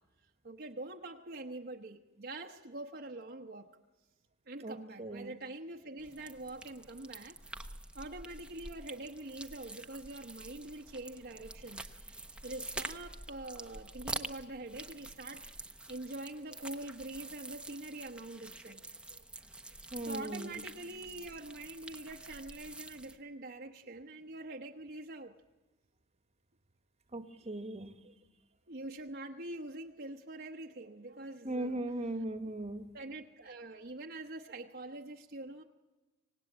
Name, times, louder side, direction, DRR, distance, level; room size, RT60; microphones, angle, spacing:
voice 1, 0.4-3.7 4.5-7.3 7.9-11.9 12.4-15.4 15.9-19.2 20.0-25.3 28.0-28.1 28.7-31.8 32.9-35.6, right 2 dB, 50° right, 1 dB, 1.1 m, -45 dB
voice 2, 4.6-5.3 19.9-20.6 27.1-27.9 31.4-32.9, right 1 dB, 30° right, 9 dB, 1.3 m, -38 dB
sound 1, 6.0-23.2, right 2 dB, 5° right, 0.8 m, -47 dB
26.0 x 18.0 x 8.5 m, 1.2 s
head